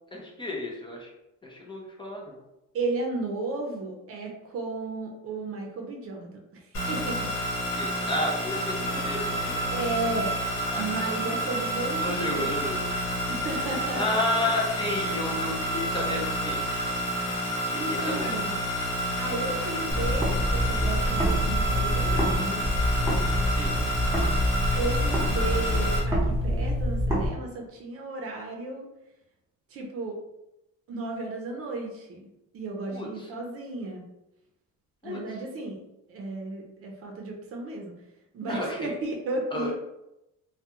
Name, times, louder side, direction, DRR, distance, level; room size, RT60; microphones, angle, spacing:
voice 1, 0.1-1.1 1.4-2.4 7.8-9.7 10.7-10.8 12.0-12.8 13.9-16.7 17.7-18.4 23.5-23.7 32.9-33.3 35.0-35.2 38.5-38.9 39.5-39.7, left 1 dB, 15° left, -2 dB, 0.5 m, -31 dB
voice 2, 2.7-7.3 9.7-10.4 10.7-12.6 13.3-14.0 17.8-18.6 19.2-22.7 24.7-28.9 29.7-30.2 30.9-32.3 32.5-34.0 35.0-35.8 36.1-37.9 38.3-39.7, right 2 dB, 50° right, 1 dB, 0.6 m, -34 dB
sound 1, 6.7-26.0, equal, 80° left, 1.0 m, -29 dB
sound 2, 19.9-22.3 22.6-27.3, equal, 10° right, 0.9 m, -26 dB
2.3 x 2.2 x 2.9 m, 0.90 s
cardioid pair, 115°, 29 cm